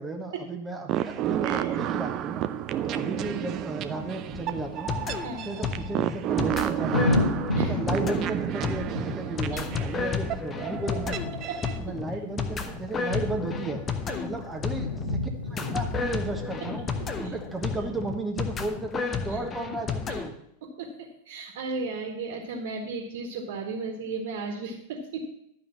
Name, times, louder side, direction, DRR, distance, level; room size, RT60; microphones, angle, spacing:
voice 1, 0.0-2.5 2.8-5.0 5.4-7.3 7.7-11.2 11.8-13.8 14.2-16.9 17.2-20.3, right 2 dB, 10° right, 2 dB, 1.3 m, -34 dB
sound 1, 0.9-11.8, right 12 dB, 35° right, 0.6 m, -31 dB
sound 2, 1.4-17.8, left 2 dB, 80° left, 1.3 m, -35 dB
voice 2, 1.4-1.8 2.8-3.0 5.2-5.5 7.6-7.8 9.5-9.7 11.5-11.8 13.1-13.2 14.1-14.4 17.2-17.3 19.3-19.4 20.1-20.2 20.6-25.4, right 3 dB, 55° right, 1 dB, 1.7 m, -35 dB
sound 3, 4.3-20.3, left 5 dB, 20° left, 0.8 m, -32 dB
11.5 x 5.2 x 7.3 m, 0.78 s
figure-of-eight pair, 90°, 0 cm